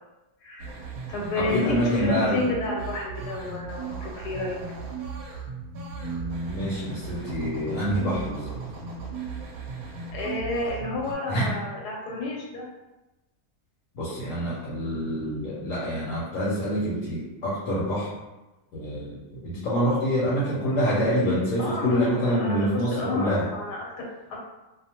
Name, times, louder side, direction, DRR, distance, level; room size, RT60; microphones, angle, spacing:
voice 1, 0.4-0.8 1.1-4.6 10.1-12.7 21.6-24.4, left 3 dB, 85° left, -2 dB, 1.2 m, -30 dB
sound 1, 0.6-11.1, right 5 dB, 70° right, 1.0 m, -37 dB
voice 2, 1.3-2.4 6.0-8.5 11.3-11.5 13.9-18.1 18.7-23.5, equal, 65° left, -7 dB, 1.0 m, -26 dB
2.7 x 2.0 x 2.8 m, 1.0 s
omnidirectional pair, 1.7 m